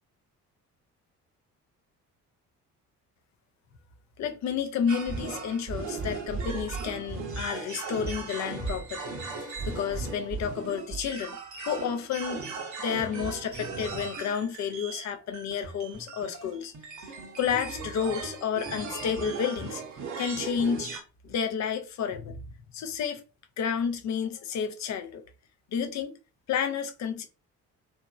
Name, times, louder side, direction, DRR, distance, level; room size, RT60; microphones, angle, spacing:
voice 1, 4.2-11.4 11.7-12.4 12.8-19.8 20.2-20.9 21.2-22.4 22.7-23.2 23.6-25.2 25.7-26.2 26.5-27.3, left 7 dB, 40° left, 0.6 m, -31 dB
sound 1, 4.9-21.0, right 4 dB, 40° right, 0.9 m, -37 dB
2.9 x 2.5 x 2.3 m
figure-of-eight pair, 45°, 47 cm